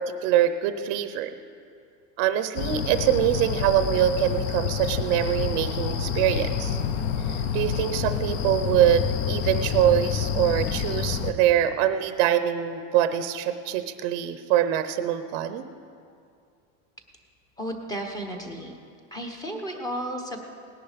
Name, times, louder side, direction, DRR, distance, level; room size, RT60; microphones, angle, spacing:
voice 1, 0.0-1.3 2.2-6.8 7.2-15.6, right 11 dB, 45° right, 10 dB, 0.7 m, -24 dB
sound 1, 2.6-11.3, left 7 dB, 35° left, 0.7 m, -28 dB
voice 2, 17.6-18.8 19.1-20.4, equal, 10° left, 3 dB, 1.0 m, -33 dB
18.5 x 10.5 x 5.1 m, 2.4 s
supercardioid pair, 165°, 40 cm